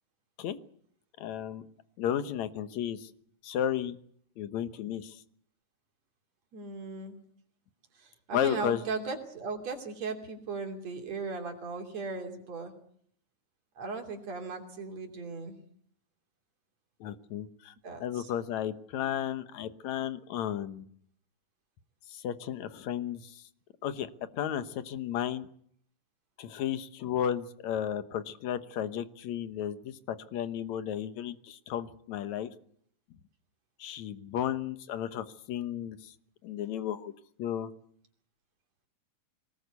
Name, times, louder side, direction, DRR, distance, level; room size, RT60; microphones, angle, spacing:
voice 1, 1.2-1.6 2.0-3.1 3.4-4.0 4.4-5.2 8.3-8.8 17.0-17.7 18.0-20.8 22.1-23.4 23.8-25.5 26.4-32.5 33.8-36.1 36.4-37.1 37.4-37.7, left 10 dB, 65° left, 12 dB, 2.3 m, -33 dB
voice 2, 6.5-7.2 8.0-12.7 13.8-15.6 17.8-18.3, right 4 dB, 55° right, 4 dB, 4.0 m, -37 dB
23.5 x 19.5 x 8.3 m, 0.63 s
omnidirectional pair, 3.7 m